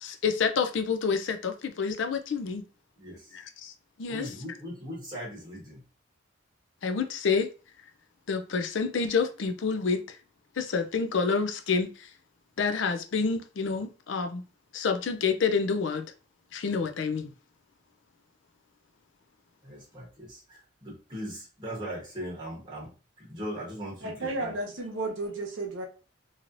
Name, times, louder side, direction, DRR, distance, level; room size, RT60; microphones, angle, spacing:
voice 1, 0.0-2.6 3.3-3.7 4.0-4.3 6.8-7.5 8.3-10.2 10.6-12.1 12.6-14.4 14.7-16.0 16.5-17.3, left 5 dB, 70° left, 0.4 m, -28 dB
voice 2, 3.0-3.4 4.1-5.8 19.6-24.5, equal, 20° right, 1.0 m, -39 dB
voice 3, 24.0-25.8, right 2 dB, 80° right, 0.8 m, -33 dB
3.0 x 2.8 x 2.5 m
head